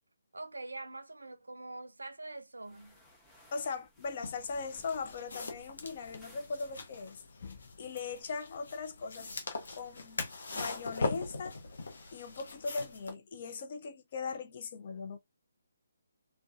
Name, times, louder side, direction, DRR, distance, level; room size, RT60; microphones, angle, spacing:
voice 1, 0.3-3.0, right 2 dB, 80° right, 0.4 m, -44 dB
sound 1, 2.6-7.2, left 1 dB, 10° left, 0.7 m, -61 dB
voice 2, 3.5-9.3 9.7-10.2 10.5-11.6 12.1-15.2, left 4 dB, 40° left, 0.4 m, -39 dB
sound 2, 4.2-13.1, left 3 dB, 65° left, 0.8 m, -41 dB
2.4 x 2.2 x 2.3 m
figure-of-eight pair, 145°, 0 cm